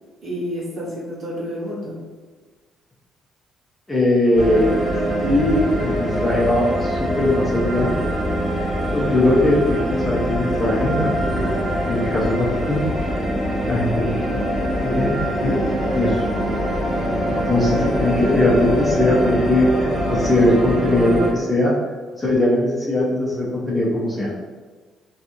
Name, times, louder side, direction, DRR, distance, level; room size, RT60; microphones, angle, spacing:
voice 1, 0.2-2.0 11.3-11.6, equal, 40° right, -8 dB, 1.3 m, -29 dB
voice 2, 3.9-4.8 5.2-8.0 8.9-11.4 11.9-12.8 13.7-14.4 14.8-15.5 15.9-16.2 17.3-21.7 22.2-24.3, left 1 dB, 10° left, -6 dB, 0.7 m, -20 dB
sound 1, 4.3-21.3, equal, 15° right, 1.0 m, -23 dB
2.9 x 2.4 x 2.6 m, 1.4 s
cardioid pair, 115°, 0 cm